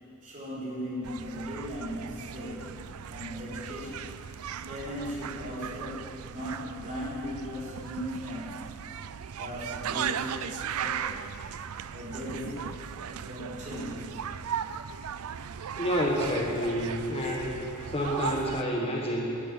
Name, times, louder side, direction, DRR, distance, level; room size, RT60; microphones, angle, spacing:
voice 1, 0.2-2.8 3.1-4.2 4.7-8.8 9.3-11.4 11.9-14.3, equal, 35° right, -7 dB, 4.0 m, -38 dB
sound 1, 1.0-18.6, right 8 dB, 75° right, 0.4 m, -37 dB
voice 2, 15.7-17.6 17.9-19.4, equal, 25° left, -2 dB, 1.4 m, -29 dB
11.5 x 10.5 x 9.0 m, 2.8 s
head